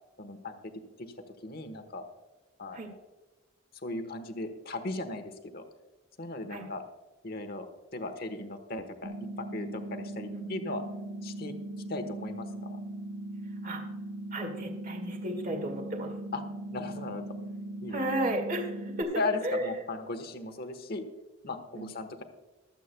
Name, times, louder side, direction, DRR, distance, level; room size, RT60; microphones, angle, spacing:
voice 1, 0.2-0.7 1.0-1.1 1.4-2.0 2.6-3.0 3.8-5.6 6.2-6.8 7.2-10.8 11.2-11.6 11.9-12.8 16.3-16.4 16.7-17.2 17.8-18.1 19.1-21.1 21.4-22.2, left 2 dB, 45° left, 7 dB, 1.2 m, -37 dB
sound 1, 9.0-19.0, right 1 dB, 60° right, 0.8 m, -39 dB
voice 2, 14.3-16.1 17.9-19.1 19.4-19.7 21.7-21.9, right 1 dB, 40° right, 4 dB, 1.9 m, -33 dB
24.0 x 8.4 x 2.2 m, 1.2 s
head